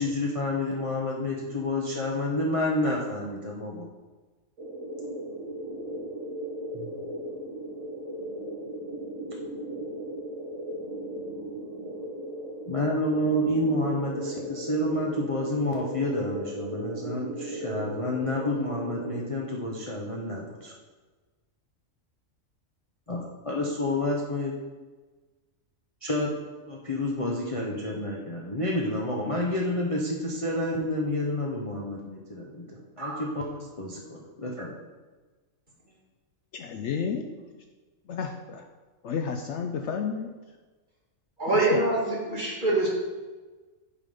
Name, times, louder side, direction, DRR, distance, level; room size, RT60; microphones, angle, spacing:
voice 1, 0.0-3.9 6.7-6.9 12.7-20.7 23.1-24.5 26.0-26.3 26.7-34.8, left 1 dB, 30° left, -3 dB, 0.7 m, -29 dB
sound 1, 4.6-19.3, right 1 dB, 65° right, 1.5 m, -36 dB
voice 2, 36.5-37.3 38.1-38.7 39.0-40.3 41.5-41.8, left 6 dB, 65° left, 4 dB, 0.8 m, -31 dB
voice 3, 41.4-42.9, right 2 dB, 35° right, -4 dB, 1.8 m, -25 dB
8.3 x 3.6 x 5.3 m, 1.3 s
omnidirectional pair, 1.4 m